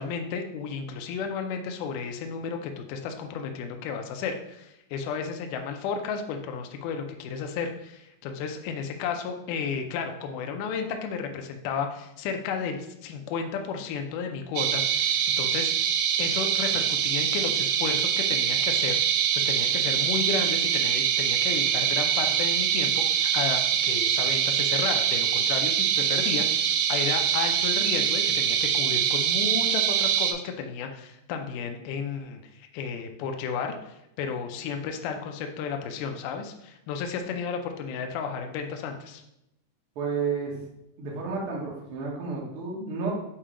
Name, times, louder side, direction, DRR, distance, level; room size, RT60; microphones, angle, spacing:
voice 1, 0.0-15.7 16.2-39.2, left 6 dB, 80° left, 4 dB, 1.9 m, -33 dB
sound 1, 14.6-30.3, right 8 dB, 85° right, 2.5 m, -24 dB
voice 2, 39.9-40.6 41.0-43.1, right 5 dB, 65° right, -4 dB, 1.3 m, -31 dB
7.2 x 2.8 x 4.9 m, 0.83 s
omnidirectional pair, 4.5 m